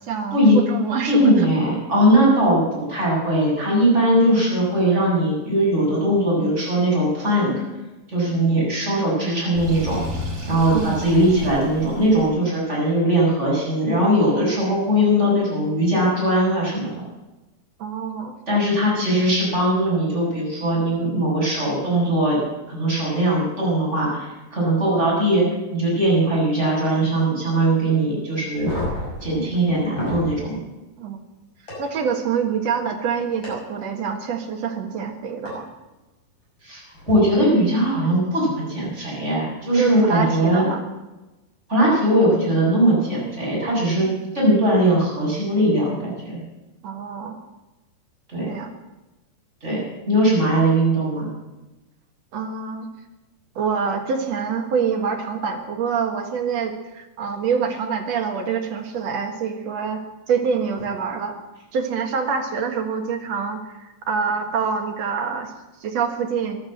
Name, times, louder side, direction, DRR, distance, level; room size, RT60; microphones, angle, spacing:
voice 1, 0.1-1.5 10.7-11.0 17.8-18.3 31.0-31.2 31.8-35.7 39.8-40.8 46.8-47.4 48.5-48.7 52.3-52.9 53.6-60.0 60.3-61.3 61.7-65.5 65.8-66.6, right 6 dB, 55° right, 4 dB, 2.4 m, -26 dB
voice 2, 1.1-7.5 8.1-10.0 10.5-16.9 18.5-22.4 22.7-28.7 29.2-30.6 36.6-40.7 41.7-46.3 48.3-48.5 49.6-51.3, right 1 dB, 20° right, -5 dB, 7.1 m, -20 dB
Sink (filling or washing), 9.5-12.3, equal, 85° right, 8.3 m, -31 dB
Three Pot Smacks, 28.5-30.3 31.7-31.8 33.4-33.5 35.5-35.6 36.9-37.1, left 2 dB, 30° left, 7.3 m, -30 dB
14.5 x 12.0 x 7.8 m, 1.1 s
omnidirectional pair, 4.1 m